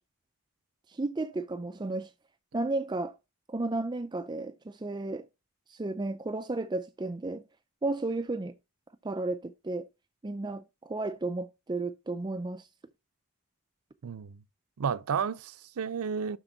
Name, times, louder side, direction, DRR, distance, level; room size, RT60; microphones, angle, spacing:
voice 1, 0.9-2.1 2.5-3.2 3.5-5.3 5.7-7.4 7.8-8.5 9.0-9.9 10.2-12.7, right 2 dB, 20° right, 0.4 m, -33 dB
voice 2, 14.0-14.4 14.8-16.4, right 6 dB, 90° right, 0.5 m, -32 dB
12.0 x 4.4 x 3.9 m
head